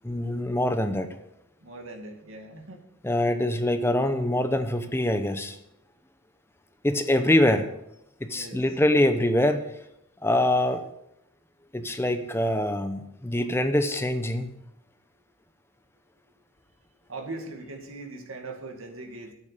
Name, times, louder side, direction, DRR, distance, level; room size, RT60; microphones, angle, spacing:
voice 1, 0.0-1.2 3.0-5.6 6.8-7.7 8.3-9.6 10.2-10.8 11.7-14.5, left 1 dB, 10° left, 9 dB, 0.7 m, -24 dB
voice 2, 1.6-2.8 8.4-8.6 17.1-19.3, right 2 dB, 80° right, 3 dB, 2.2 m, -40 dB
10.5 x 8.8 x 6.7 m, 0.82 s
head